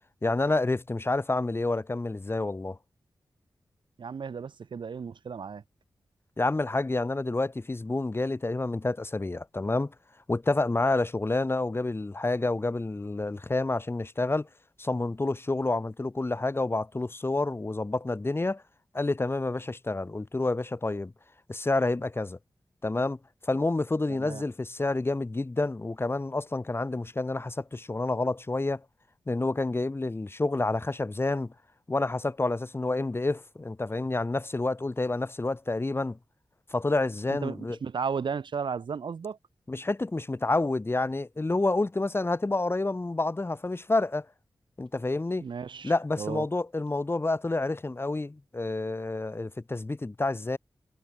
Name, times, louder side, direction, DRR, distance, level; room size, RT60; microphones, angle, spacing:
voice 1, 0.2-2.8 6.4-9.9 10.3-14.5 14.8-18.6 18.9-21.1 21.5-22.4 22.8-28.8 29.3-31.5 31.9-36.2 36.7-37.8 39.7-44.3 44.8-45.5 45.8-50.6, left 2 dB, 30° left, 2.1 m, -29 dB
voice 2, 4.0-5.6 24.2-24.4 37.3-39.4 45.4-46.4, right 6 dB, 85° right, 7.7 m, -34 dB
wide cardioid pair, 70°, 8 cm